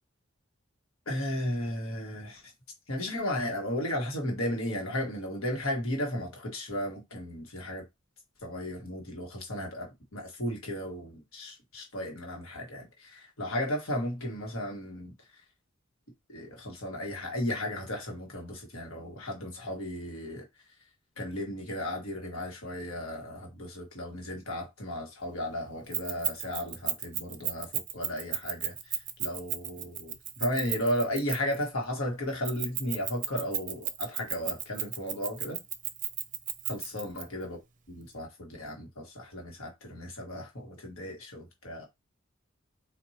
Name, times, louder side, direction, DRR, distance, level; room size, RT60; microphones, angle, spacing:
voice 1, 1.1-2.4 2.9-7.8 8.4-15.1 16.3-20.4 21.2-28.7 29.2-35.6 36.7-37.6 37.9-41.9, left 1 dB, 85° left, 1.5 m, -34 dB
Keys jangling, 25.9-31.6 32.4-37.2, right 11 dB, 40° right, 0.5 m, -33 dB
4.4 x 2.6 x 2.8 m
head